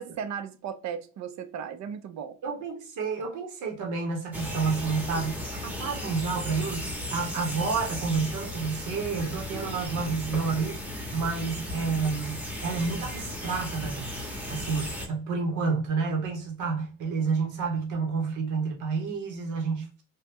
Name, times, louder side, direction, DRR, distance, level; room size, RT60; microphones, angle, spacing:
voice 1, 0.0-2.4, right 7 dB, 65° right, 0.5 m, -36 dB
voice 2, 2.4-10.8 11.1-20.0, right 4 dB, 85° right, 1.0 m, -30 dB
sound 1, 4.3-15.1, left 1 dB, 5° right, 0.8 m, -36 dB
2.9 x 2.2 x 3.4 m
cardioid pair, 90°, 30 cm